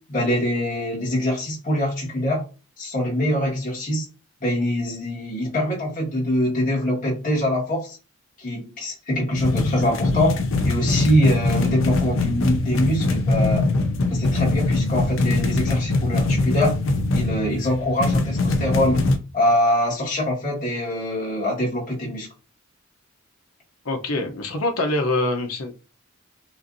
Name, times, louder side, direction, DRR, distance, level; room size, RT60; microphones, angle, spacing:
voice 1, 0.1-2.4 2.8-4.1 4.4-8.0 8.4-13.7 14.1-16.8 17.1-19.1 19.3-22.3, left 1 dB, 40° left, 1.8 m, -24 dB
sound 1, 9.4-19.2, left 2 dB, 65° left, 0.6 m, -22 dB
voice 2, 23.8-25.7, left 2 dB, 90° left, 0.9 m, -24 dB
5.8 x 2.6 x 2.7 m
head